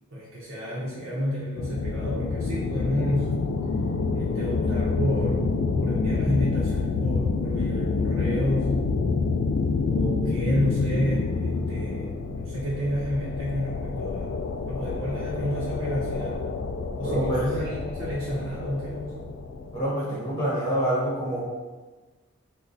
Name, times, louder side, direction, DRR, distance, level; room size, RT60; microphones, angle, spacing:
voice 1, 0.1-3.4 4.1-5.5 5.8-8.8 9.9-16.4 17.0-19.3, left 1 dB, 75° right, -7 dB, 0.9 m, -30 dB
sound 1, 1.6-19.8, left 4 dB, 70° left, 0.3 m, -27 dB
voice 2, 17.0-17.5 19.7-21.4, right 1 dB, 15° left, -7 dB, 1.1 m, -26 dB
3.9 x 2.3 x 3.8 m, 1.3 s
head